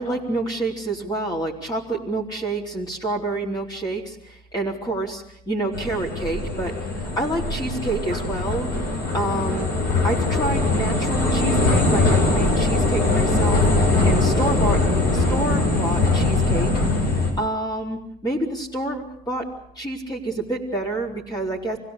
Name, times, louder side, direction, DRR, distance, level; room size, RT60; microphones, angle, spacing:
voice 1, 0.0-8.7 9.1-9.7 10.0-13.6 14.0-14.8 15.1-16.7 17.0-19.5 19.8-21.8, right 2 dB, 25° left, -1 dB, 4.1 m, -28 dB
sound 1, 5.7-17.3, left 2 dB, 60° left, 7.4 m, -21 dB
25.5 x 16.5 x 8.3 m, 0.71 s
cardioid pair, 110°, 17 cm